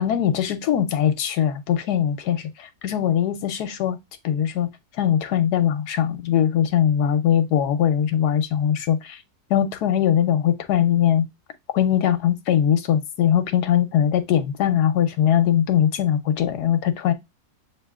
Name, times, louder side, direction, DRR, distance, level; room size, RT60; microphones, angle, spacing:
voice 1, 0.0-4.0 4.2-4.7 5.0-9.2 9.5-11.3 11.7-17.1, left 10 dB, 80° left, 1.3 m, -21 dB
7.6 x 2.7 x 2.4 m
omnidirectional pair, 1.7 m